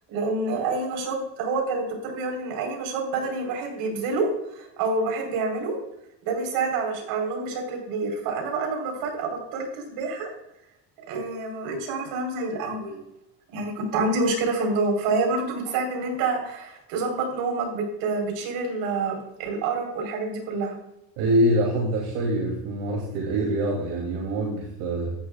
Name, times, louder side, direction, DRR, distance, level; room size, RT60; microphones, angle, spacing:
voice 1, 0.1-5.8 6.2-10.3 11.1-13.0 13.5-20.8, right 3 dB, 75° right, 2 dB, 4.3 m, -27 dB
voice 2, 21.2-25.1, right 1 dB, 90° right, -1 dB, 2.9 m, -25 dB
13.5 x 11.5 x 2.4 m, 0.83 s
cardioid pair, 135°, 36 cm